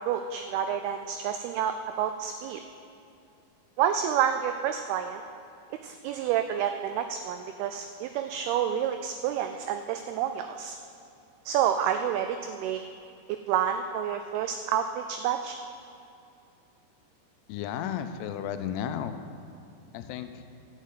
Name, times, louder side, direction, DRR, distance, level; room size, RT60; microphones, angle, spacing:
voice 1, 0.0-2.6 3.8-5.2 5.8-10.8 11.5-12.8 13.5-15.6, right 9 dB, 90° right, 8 dB, 2.2 m, -29 dB
voice 2, 17.5-19.2 19.9-20.4, left 9 dB, 80° left, 9 dB, 2.6 m, -33 dB
13.0 x 6.4 x 8.3 m, 2.6 s
omnidirectional pair, 5.0 m